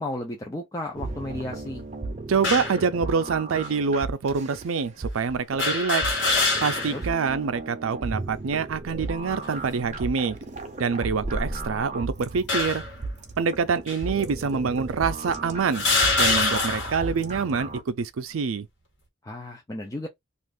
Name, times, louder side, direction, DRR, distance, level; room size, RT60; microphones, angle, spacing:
voice 1, 0.0-1.8 6.9-7.0 19.2-20.1, left 1 dB, 15° left, 0.4 m, -33 dB
sound 1, 1.0-17.8, right 3 dB, 35° right, 0.6 m, -36 dB
voice 2, 2.3-6.0 6.6-10.4 10.8-12.8 13.4-15.8 16.2-18.7, right 5 dB, 85° right, 0.5 m, -26 dB
sound 2, 2.4-2.8 3.7-3.8 5.6-7.1 7.5-7.6 8.7-9.2 9.8-10.1 11.1-11.9 12.5-13.0 13.9-14.0 14.9-15.0 15.7-17.0, left 3 dB, 65° left, 1.2 m, -25 dB
2.5 x 2.5 x 3.5 m
head